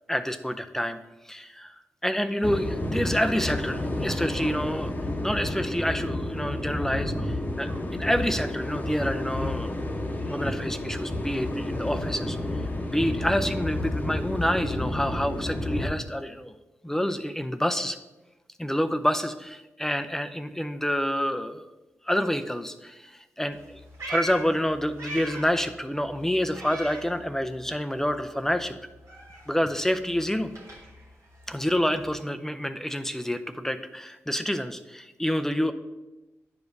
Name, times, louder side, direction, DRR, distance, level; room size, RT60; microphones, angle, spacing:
voice 1, 0.1-1.0 1.3-1.7 2.0-4.9 5.2-9.8 10.3-12.4 12.9-16.6 16.8-18.0 18.6-21.6 22.1-23.1 23.4-23.8 24.1-28.8 29.5-30.5 31.5-35.7, equal, 5° left, 9 dB, 0.5 m, -28 dB
sound 1, 2.4-15.9, left 1 dB, 30° left, 0.9 m, -30 dB
Meow, 23.5-25.7 26.0-27.7 28.0-32.1, right 2 dB, 70° right, 2.0 m, -41 dB
9.4 x 4.9 x 2.6 m, 1.0 s
supercardioid pair, 45°, 6 cm